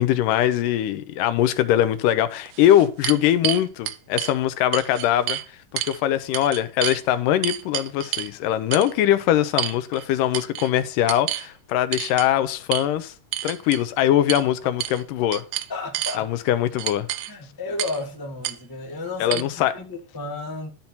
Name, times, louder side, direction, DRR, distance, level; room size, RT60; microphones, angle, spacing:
voice 1, 0.0-5.4 5.7-13.1 13.4-15.5 16.2-17.1 19.2-19.7, left 12 dB, 90° left, 2.4 m, -22 dB
sound 1, 1.8-1.9 2.5-4.3 4.7-5.4 5.8-6.0 6.3-7.0 7.4-8.3 8.7-8.9 9.6-10.0 10.3-10.7 11.1-11.5 11.9-12.3 12.7-12.8 13.3-13.8 14.3-14.4 14.8-15.0 15.3-16.2 16.8-17.3 17.8-18.0 18.4-18.6 19.3-19.4, right 14 dB, 80° right, 1.5 m, -29 dB
voice 2, 15.7-16.3 17.3-20.7, left 3 dB, 15° left, 0.6 m, -32 dB
12.0 x 4.5 x 5.3 m
omnidirectional pair, 3.7 m